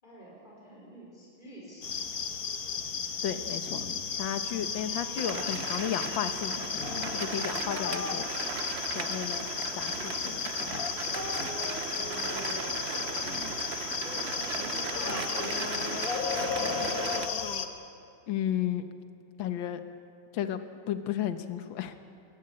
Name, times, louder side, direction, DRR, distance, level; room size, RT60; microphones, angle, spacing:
voice 1, 0.0-1.9 11.9-12.8 14.0-17.3, equal, 20° left, -4 dB, 5.2 m, -48 dB
sound 1, 1.8-17.7, left 6 dB, 45° left, 1.5 m, -34 dB
voice 2, 3.2-3.8 4.2-6.7 7.1-8.3 9.0-9.5 9.8-10.5 18.3-18.8 19.4-19.8 20.3-22.0, left 10 dB, 65° left, 10 dB, 1.8 m, -33 dB
sound 2, 5.2-17.3, right 6 dB, 75° right, 0.5 m, -37 dB
22.0 x 18.5 x 8.8 m, 2.4 s
omnidirectional pair, 2.4 m